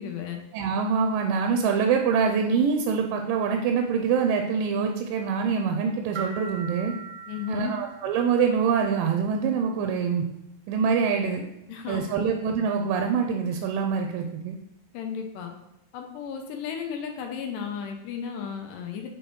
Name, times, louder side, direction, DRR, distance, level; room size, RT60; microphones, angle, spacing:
voice 1, 0.0-0.4 7.3-7.8 11.7-12.3 14.9-15.5 15.9-19.1, left 7 dB, 80° left, 3 dB, 2.3 m, -34 dB
voice 2, 0.5-6.9 7.5-10.3 10.7-11.4 11.9-14.6, right 6 dB, 85° right, 4 dB, 2.2 m, -25 dB
sound 1, 6.2-8.8, right 5 dB, 70° right, 1.4 m, -40 dB
7.9 x 4.1 x 3.1 m, 0.89 s
omnidirectional pair, 4.0 m